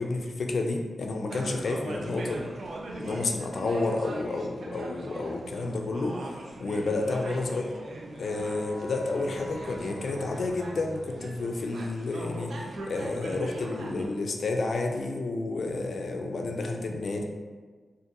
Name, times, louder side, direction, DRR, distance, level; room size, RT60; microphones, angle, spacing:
voice 1, 0.0-2.4 3.0-7.7 8.2-17.2, left 3 dB, 60° left, 2 dB, 0.3 m, -30 dB
sound 1, 1.3-14.1, right 1 dB, 70° right, 0.4 m, -41 dB
Bowed string instrument, 8.2-12.6, equal, ahead, 0.5 m, -46 dB
3.9 x 2.5 x 2.6 m, 1.5 s
wide cardioid pair, 150°, 0 cm